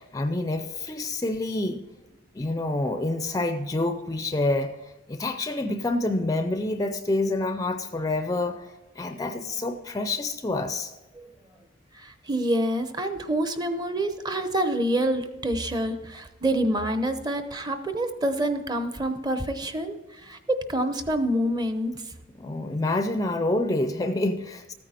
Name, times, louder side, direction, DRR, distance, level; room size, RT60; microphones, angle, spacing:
voice 1, 0.0-1.8 2.4-4.8 5.1-8.7 9.0-10.9 22.4-24.7, left 2 dB, 20° left, 8 dB, 0.4 m, -27 dB
voice 2, 11.9-22.0, right 1 dB, 20° right, 9 dB, 0.7 m, -27 dB
13.5 x 9.1 x 4.3 m, 1.1 s
head